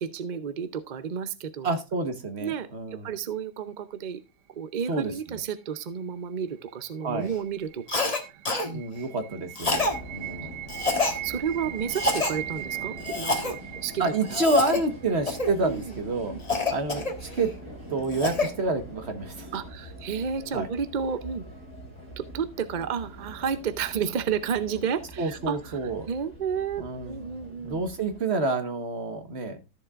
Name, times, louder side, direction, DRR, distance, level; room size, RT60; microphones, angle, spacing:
voice 1, 0.0-1.7 2.4-4.2 4.5-8.1 8.6-8.8 10.4-10.6 11.2-14.8 15.6-16.0 16.3-16.4 19.5-21.4 22.2-25.7 26.1-27.8, right 7 dB, 65° right, 12 dB, 0.4 m, -32 dB
voice 2, 1.6-3.1 4.9-5.1 7.0-7.3 8.7-10.5 14.0-16.3 16.7-17.5 17.9-19.5 20.5-20.7 25.2-26.1 26.8-27.3 27.6-29.6, right 3 dB, 45° right, 8 dB, 1.4 m, -28 dB
sound 1, 6.8-15.8, right 13 dB, 80° right, 1.5 m, -40 dB
Cough, 7.9-8.2 8.5-8.7 9.6-10.0 10.7-11.2 11.9-12.3 13.0-13.5 14.3-14.8 15.3-15.5 16.5-17.5 17.9-18.5, left 3 dB, 25° left, 1.3 m, -27 dB
sound 2, 9.6-28.2, right 1 dB, 15° right, 3.1 m, -44 dB
14.0 x 7.1 x 2.4 m, 0.27 s
omnidirectional pair, 1.8 m